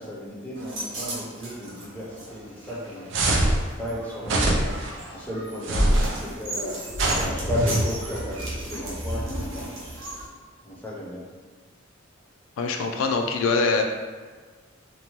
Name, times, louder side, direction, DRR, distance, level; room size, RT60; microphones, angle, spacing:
voice 1, 0.0-3.1 3.8-4.8 5.1-6.9 7.2-9.7 10.6-11.3, left 1 dB, 10° left, -6 dB, 0.6 m, -34 dB
sound 1, 0.5-10.3, right 1 dB, 80° right, 0.8 m, -33 dB
sound 2, 3.1-3.6 4.2-4.9 5.6-6.2 6.9-7.8, right 1 dB, 65° right, 0.5 m, -23 dB
voice 2, 12.6-13.8, left 4 dB, 80° left, 3 dB, 0.3 m, -23 dB
2.6 x 2.1 x 3.0 m, 1.4 s
head